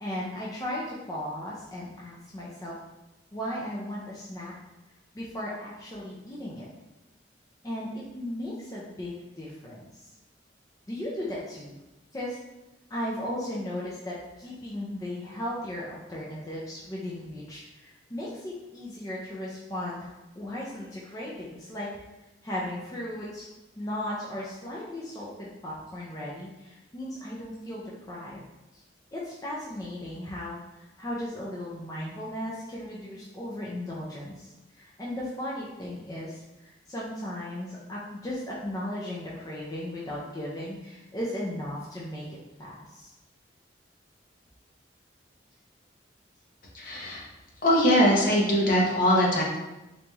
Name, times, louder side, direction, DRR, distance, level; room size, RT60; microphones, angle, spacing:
voice 1, 0.0-2.7 3.3-4.5 5.1-6.7 7.6-7.9 8.1-10.1 10.9-11.8 12.1-12.4 12.9-21.9 22.4-23.5 23.8-28.4 28.7-28.8 29.1-42.3 42.6-43.1, left 1 dB, 20° left, -6 dB, 0.4 m, -36 dB
voice 2, 46.7-47.2 47.6-49.4, equal, 50° left, -3 dB, 0.8 m, -22 dB
3.9 x 3.1 x 2.3 m, 1.0 s
head